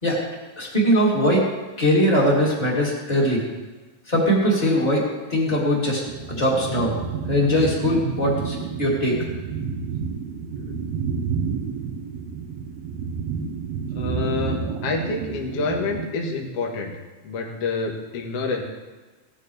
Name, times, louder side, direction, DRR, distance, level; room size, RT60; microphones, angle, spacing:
voice 1, 0.6-1.4 1.8-3.4 4.1-6.0 6.3-6.9 7.3-9.2, equal, 10° left, -4 dB, 2.4 m, -21 dB
sound 1, 6.1-16.1, right 6 dB, 75° right, 2.8 m, -30 dB
voice 2, 14.0-17.0 17.2-18.6, left 4 dB, 55° left, 0 dB, 1.9 m, -28 dB
17.5 x 11.0 x 3.4 m, 1.3 s
omnidirectional pair, 4.7 m